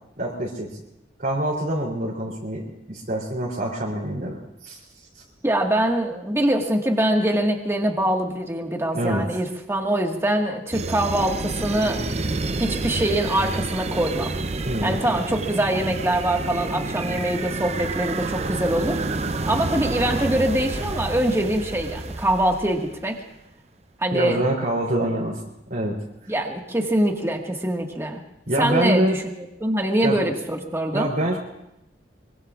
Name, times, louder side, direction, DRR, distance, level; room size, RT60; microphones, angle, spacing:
voice 1, 0.2-0.8 1.2-4.8 8.9-9.3 14.6-15.1 24.1-25.4 25.7-26.0 28.5-29.2 30.0-30.2 30.9-31.4, right 1 dB, 55° right, -6 dB, 3.5 m, -25 dB
voice 2, 5.4-12.1 12.6-14.3 14.8-19.0 19.5-23.2 24.0-24.4 26.3-28.2 28.6-29.2 29.6-31.1, right 1 dB, 15° right, 2 dB, 1.8 m, -23 dB
sound 1, 10.7-23.0, right 3 dB, 40° right, 0.7 m, -29 dB
24.0 x 23.5 x 2.5 m, 0.84 s
head